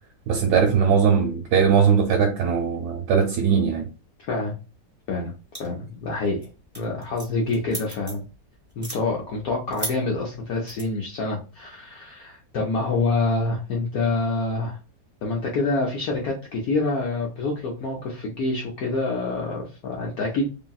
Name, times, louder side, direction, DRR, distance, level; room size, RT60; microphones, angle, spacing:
voice 1, 0.3-3.9, right 6 dB, 75° right, 1.1 m, -20 dB
sound 1, 5.5-5.9 6.2-6.5 6.7-8.3 8.7-9.0 9.7-9.9 10.7-10.8, equal, 5° right, 1.0 m, -34 dB
voice 2, 5.6-6.5 6.8-8.2 8.8-14.8 15.2-20.5, left 3 dB, 65° left, 0.9 m, -26 dB
2.8 x 2.7 x 2.3 m
omnidirectional pair, 1.9 m